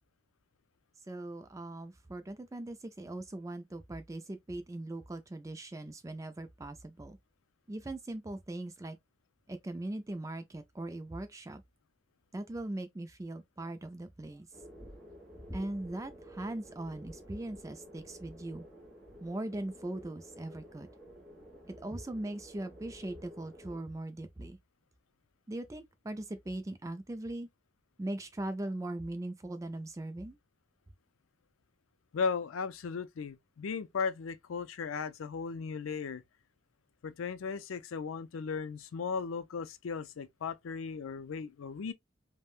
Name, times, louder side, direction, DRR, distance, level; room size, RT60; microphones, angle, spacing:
voice 1, 1.1-7.2 7.7-9.0 9.5-11.6 12.3-14.5 15.5-18.6 19.2-20.9 21.7-24.6 25.5-27.5 28.0-30.4, right 1 dB, 15° right, 0.3 m, -40 dB
sound 1, 14.5-23.8, equal, ahead, 1.2 m, -51 dB
voice 2, 32.1-36.2 37.0-41.9, left 5 dB, 85° left, 0.4 m, -36 dB
3.5 x 2.1 x 2.4 m
head